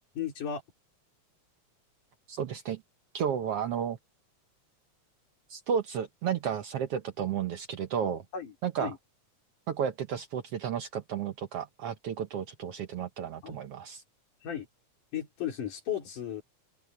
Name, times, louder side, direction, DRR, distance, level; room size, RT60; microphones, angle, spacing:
voice 1, 0.2-0.6 8.3-9.0 13.4-13.6 14.4-14.7 15.1-16.4, left 9 dB, 80° left, 5.1 m, -35 dB
voice 2, 2.3-2.8 3.1-4.0 5.5-8.2 8.6-8.9 9.7-14.0, right 8 dB, 65° right, 1.6 m, -32 dB
open air
omnidirectional pair, 3.6 m